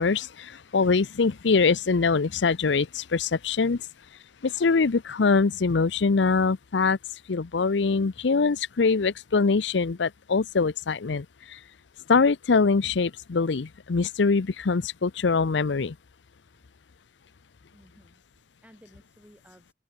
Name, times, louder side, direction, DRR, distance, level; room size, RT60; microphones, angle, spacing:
voice 1, 0.0-3.9 4.4-7.0 7.3-11.6 12.1-16.0, left 4 dB, 75° left, 0.6 m, -23 dB
voice 2, 17.7-19.7, equal, 10° right, 4.7 m, -56 dB
open air
head